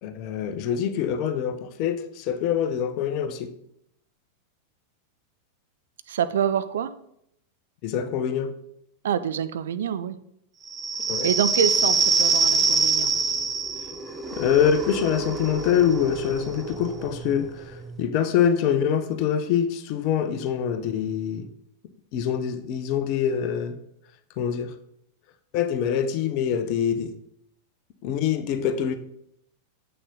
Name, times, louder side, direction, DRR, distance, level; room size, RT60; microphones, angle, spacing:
voice 1, 0.0-3.5 7.8-8.5 11.1-11.3 14.3-21.5 22.1-23.7 24.4-24.7 25.5-27.1 28.0-28.9, left 8 dB, 45° left, 10 dB, 0.8 m, -25 dB
voice 2, 6.1-6.9 9.0-10.2 11.2-13.1, right 8 dB, 60° right, 12 dB, 0.5 m, -26 dB
sound 1, 10.7-17.9, right 4 dB, 20° right, 0.8 m, -25 dB
7.9 x 6.2 x 3.9 m, 0.73 s
figure-of-eight pair, 90°, 0 cm